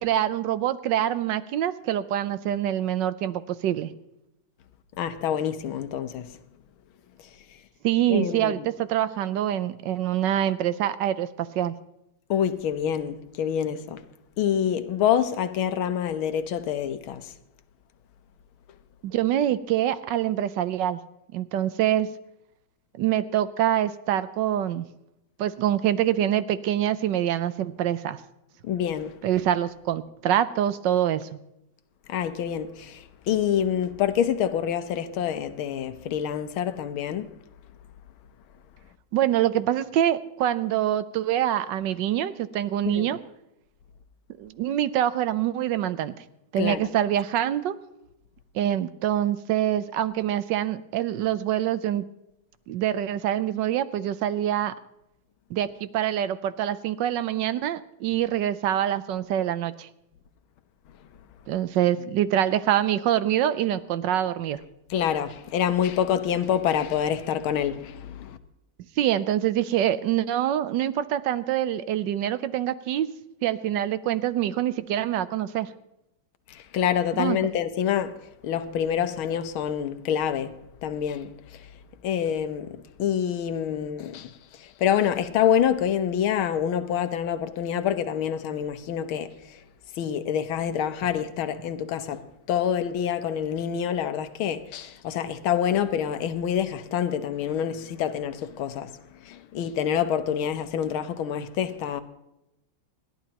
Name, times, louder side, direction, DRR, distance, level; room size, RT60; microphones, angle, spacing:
voice 1, 0.0-3.9 7.8-11.7 19.0-21.0 21.3-22.1 23.0-24.8 25.4-28.2 29.2-31.4 39.1-43.2 44.4-46.1 46.5-47.8 48.5-52.0 52.7-54.7 55.5-59.9 61.5-64.6 69.0-73.1 73.4-75.7 77.1-77.4, right 11 dB, 70° right, 1.3 m, -25 dB
voice 2, 5.0-6.3 8.1-8.7 12.3-14.0 14.4-17.3 28.6-29.2 32.1-37.3 42.9-43.1 46.6-46.9 64.9-68.4 76.5-78.2 78.4-81.7 82.0-89.6 90.0-92.2 92.5-102.0, left 9 dB, 90° left, 1.7 m, -27 dB
28.5 x 11.5 x 2.9 m
omnidirectional pair, 2.2 m